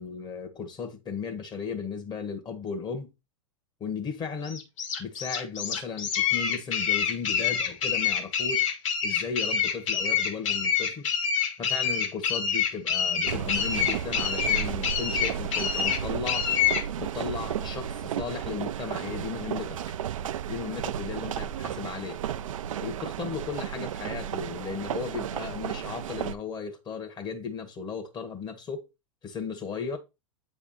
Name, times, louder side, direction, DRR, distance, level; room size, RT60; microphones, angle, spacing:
voice 1, 0.0-3.1 3.8-4.6 5.0-8.7 9.0-11.1 11.6-16.5 17.0-19.8 20.5-22.2 22.8-28.9 29.2-30.0, left 6 dB, 25° left, 1.5 m, -35 dB
sound 1, 4.4-16.8, left 7 dB, 70° left, 1.9 m, -27 dB
sound 2, 13.3-26.3, right 10 dB, 75° right, 0.5 m, -33 dB
8.6 x 3.5 x 4.2 m
hypercardioid pair, 110°, 17 cm